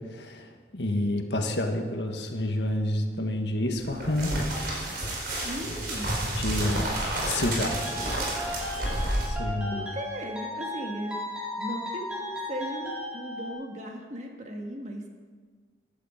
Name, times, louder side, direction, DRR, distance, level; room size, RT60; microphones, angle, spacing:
voice 1, 0.1-0.5 0.7-4.4 6.2-6.9 7.3-7.8 9.2-9.8, left 1 dB, 75° left, 4 dB, 1.7 m, -29 dB
sound 1, 3.8-9.3, right 1 dB, 60° right, 4.6 m, -30 dB
voice 2, 5.4-6.2 9.7-11.2 11.6-15.0, equal, 40° right, 2 dB, 1.9 m, -37 dB
sound 2, 7.7-13.5, left 1 dB, 5° right, 4.2 m, -36 dB
15.5 x 11.5 x 5.2 m, 1.5 s
head